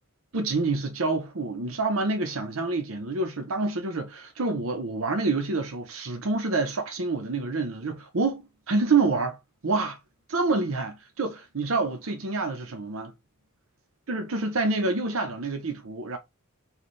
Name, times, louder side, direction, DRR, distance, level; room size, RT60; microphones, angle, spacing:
voice 1, 0.3-9.4 9.6-10.0 10.3-13.1 14.1-16.2, right 3 dB, 70° right, 0.8 m, -27 dB
4.3 x 2.4 x 3.1 m
head